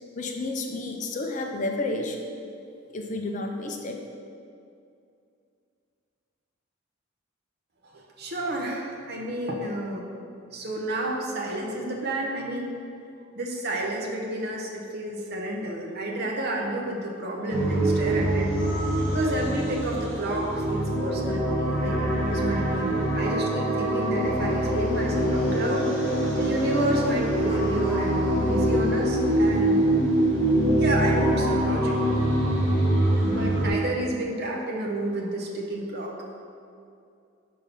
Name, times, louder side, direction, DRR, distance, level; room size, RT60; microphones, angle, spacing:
voice 1, 0.2-2.2 2.9-4.0, left 2 dB, 40° left, 3 dB, 0.5 m, -31 dB
voice 2, 7.8-10.0 10.5-12.7 13.3-18.5 19.1-29.8 30.8-32.2 33.2-36.2, right 1 dB, 50° right, -1 dB, 0.9 m, -30 dB
sound 1, 17.5-33.7, right 1 dB, 5° left, 1.5 m, -24 dB
5.8 x 3.8 x 5.3 m, 2.5 s
head